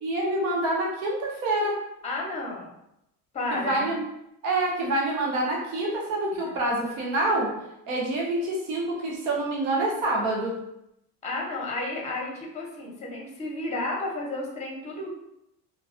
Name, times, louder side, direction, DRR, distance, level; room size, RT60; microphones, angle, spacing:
voice 1, 0.0-1.8 3.5-4.0 4.4-7.5 7.9-10.6, right 2 dB, 90° right, -3 dB, 0.8 m, -26 dB
voice 2, 2.0-2.7 3.3-3.9 6.3-6.5 11.2-15.1, left 2 dB, 15° left, -1 dB, 0.6 m, -32 dB
2.3 x 2.2 x 2.4 m, 0.82 s
supercardioid pair, 110°, 41 cm